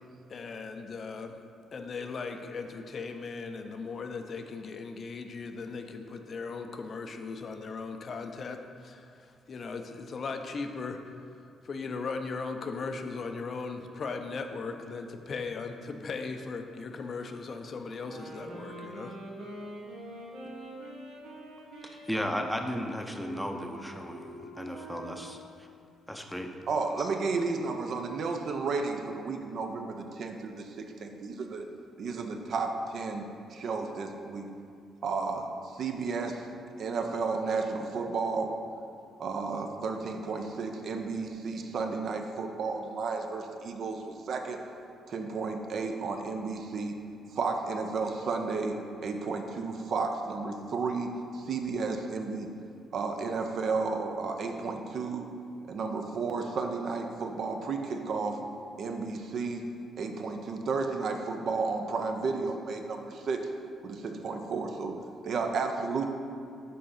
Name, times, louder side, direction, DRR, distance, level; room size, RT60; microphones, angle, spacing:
voice 1, 0.3-1.4 1.7-11.1 11.6-19.2, left 4 dB, 50° left, 6 dB, 0.4 m, -38 dB
sound 1, 18.0-25.5, right 1 dB, 85° right, 1.3 m, -44 dB
voice 2, 21.8-25.7 26.1-26.5 27.0-27.1, equal, ahead, 3 dB, 0.6 m, -35 dB
voice 3, 26.7-31.7 32.0-33.2 33.5-34.5 35.0-35.4 35.7-36.5 36.8-38.5 39.2-44.6 45.1-47.0 47.3-48.8 49.0-51.1 51.3-52.5 52.9-55.3 55.7-58.4 58.8-59.6 60.0-63.5 63.8-64.9 65.2-66.1, right 4 dB, 60° right, 4 dB, 0.6 m, -32 dB
5.5 x 3.8 x 5.6 m, 2.4 s
cardioid pair, 90°, 0 cm